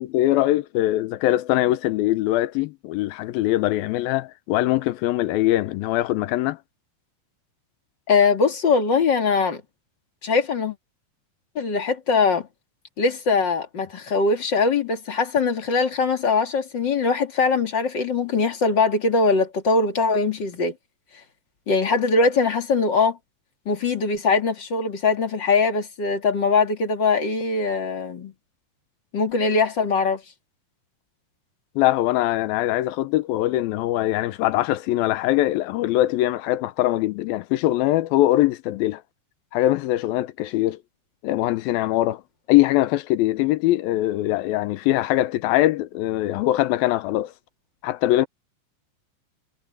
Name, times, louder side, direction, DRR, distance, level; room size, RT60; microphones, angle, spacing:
voice 1, 0.0-6.6 31.8-39.0 39.5-40.8 41.2-42.2 42.5-47.3 47.8-48.3, left 15 dB, 85° left, 2.5 m, -22 dB
voice 2, 8.1-9.6 10.2-10.8 11.6-12.5 13.0-20.7 21.7-23.2 23.7-28.3 29.1-30.2, left 4 dB, 35° left, 2.4 m, -21 dB
omnidirectional pair, 4.3 m